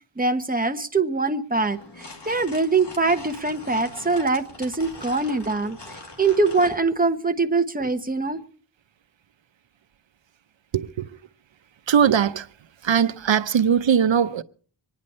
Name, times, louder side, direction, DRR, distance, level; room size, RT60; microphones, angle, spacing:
voice 1, 0.2-5.8 6.2-8.4, right 3 dB, 20° right, 1.1 m, -23 dB
sound 1, 1.6-6.8, left 2 dB, 65° left, 2.5 m, -42 dB
voice 2, 10.7-11.1 11.9-12.5 12.8-14.4, right 8 dB, 85° right, 0.7 m, -20 dB
25.0 x 10.5 x 4.3 m
wide cardioid pair, 70°, 44 cm